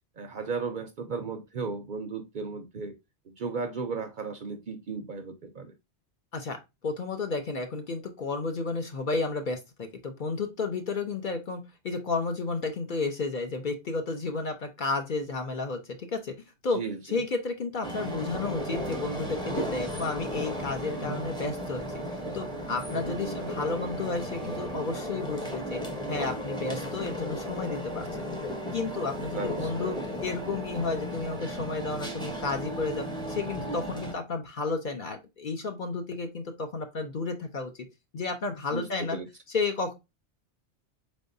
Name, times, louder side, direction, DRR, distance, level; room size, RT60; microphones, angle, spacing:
voice 1, 0.2-2.9 3.3-5.7 16.7-17.2 22.9-23.4 29.3-29.9 38.7-39.3, right 4 dB, 55° right, 0.6 m, -35 dB
voice 2, 6.8-16.3 16.6-16.8 17.0-21.8 22.3-25.8 26.1-28.4 28.7-37.7 38.1-39.2 39.5-39.9, left 3 dB, 50° left, 0.7 m, -32 dB
sound 1, 17.8-34.1, equal, 5° left, 0.7 m, -35 dB
4.5 x 3.5 x 2.5 m
omnidirectional pair, 1.2 m